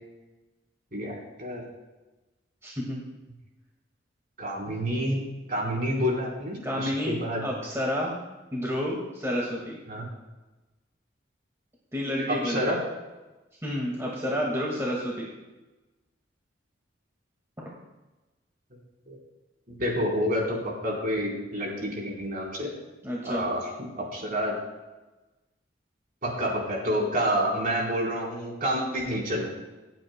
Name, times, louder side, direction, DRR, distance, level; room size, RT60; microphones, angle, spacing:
voice 1, 0.9-1.6 4.4-5.2 5.5-7.4 9.9-10.0 12.4-12.8 19.1-19.2 19.7-22.7 23.2-23.6 24.0-24.5 26.2-29.6, equal, 50° right, -3 dB, 3.9 m, -28 dB
voice 2, 2.6-3.0 4.7-4.8 6.6-7.2 7.4-8.1 8.5-9.8 11.9-12.7 13.6-15.3 23.0-23.5, equal, 15° right, -4 dB, 1.8 m, -30 dB
26.5 x 9.0 x 2.2 m, 1.1 s
head